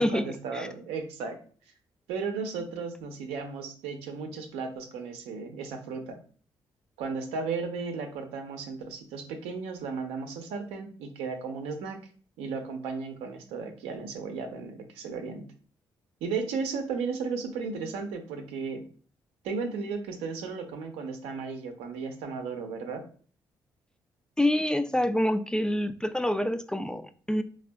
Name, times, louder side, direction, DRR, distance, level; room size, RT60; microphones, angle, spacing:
voice 1, 0.0-1.4 2.1-6.2 7.0-12.0 12.4-15.4 16.2-18.8 19.4-23.0, right 5 dB, 85° right, 0.6 m, -35 dB
voice 2, 24.4-27.4, left 1 dB, 10° left, 0.3 m, -26 dB
3.4 x 2.3 x 2.2 m
supercardioid pair, 50°, 10 cm